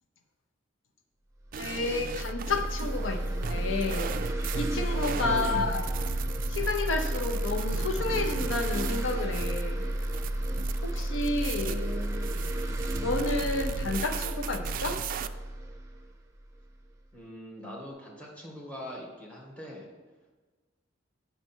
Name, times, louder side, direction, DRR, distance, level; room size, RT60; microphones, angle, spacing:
sound 1, 1.5-16.9, right 1 dB, 15° right, 0.7 m, -32 dB
sound 2, 1.5-15.3, right 6 dB, 45° right, 0.3 m, -38 dB
voice 1, 1.6-4.2 4.5-5.8 6.5-9.9 10.8-11.8 13.0-15.0, left 3 dB, 85° left, 5 dB, 0.7 m, -31 dB
voice 2, 5.2-5.8 11.5-12.5 17.1-19.9, left 1 dB, 10° left, -3 dB, 1.9 m, -41 dB
9.1 x 5.8 x 4.5 m, 1.3 s
head